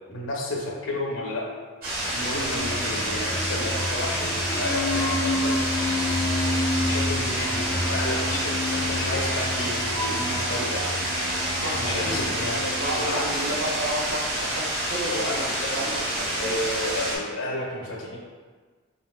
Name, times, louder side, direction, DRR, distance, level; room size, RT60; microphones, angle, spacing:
voice 1, 0.1-1.5 2.1-10.9 11.6-13.5 15.1-15.8 16.4-18.2, left 1 dB, 70° left, -1 dB, 0.7 m, -32 dB
sound 1, 1.8-17.2, right 1 dB, 45° right, 1.3 m, -28 dB
sound 2, 2.3-13.2, left 2 dB, 15° left, 0.4 m, -29 dB
voice 2, 2.3-2.9 3.5-3.6 4.8-5.0 5.4-5.6 8.3-8.4 11.5-12.2 12.7-16.5, right 1 dB, 65° right, -1 dB, 0.7 m, -33 dB
4.0 x 3.9 x 2.3 m, 1.4 s
head